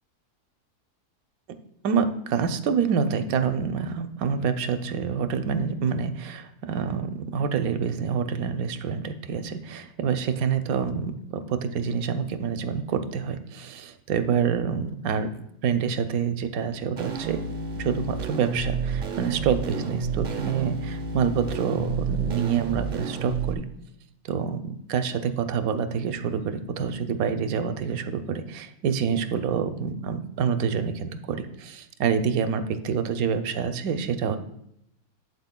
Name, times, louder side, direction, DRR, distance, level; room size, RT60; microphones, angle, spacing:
voice 1, 1.8-17.4 17.8-23.6 24.2-34.4, right 6 dB, 70° right, 8 dB, 1.0 m, -27 dB
sound 1, 17.0-23.5, right 5 dB, 50° right, 0.7 m, -30 dB
12.0 x 8.0 x 2.2 m, 0.79 s
omnidirectional pair, 1.6 m